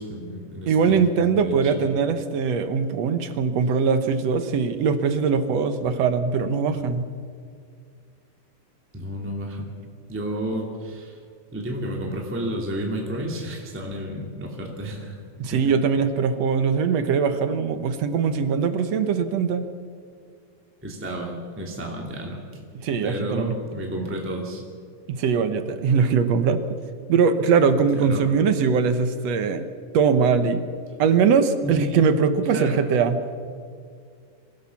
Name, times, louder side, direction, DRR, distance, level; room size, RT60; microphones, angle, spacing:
voice 1, 0.0-1.1 1.3-1.9 8.9-9.7 10.1-11.2 11.5-15.2 15.5-15.7 20.8-22.6 23.0-24.6 28.0-28.2 31.6-32.1 32.5-32.8, equal, 5° right, -1 dB, 2.2 m, -31 dB
voice 2, 0.7-7.1 15.4-19.7 22.8-23.6 25.1-26.6 27.1-29.7 29.9-30.6 31.0-33.2, right 6 dB, 65° right, 10 dB, 1.9 m, -21 dB
24.5 x 16.0 x 7.2 m, 2.2 s
omnidirectional pair, 3.8 m